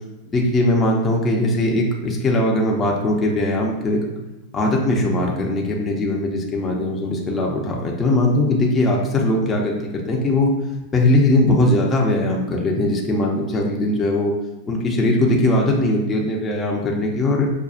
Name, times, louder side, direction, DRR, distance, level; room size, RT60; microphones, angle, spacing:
voice 1, 0.3-4.0 4.5-9.7 10.1-10.5 10.9-14.3 14.7-17.5, left 1 dB, 25° left, -1 dB, 0.6 m, -20 dB
5.5 x 2.3 x 2.4 m, 1.1 s
hypercardioid pair, 105°, 0 cm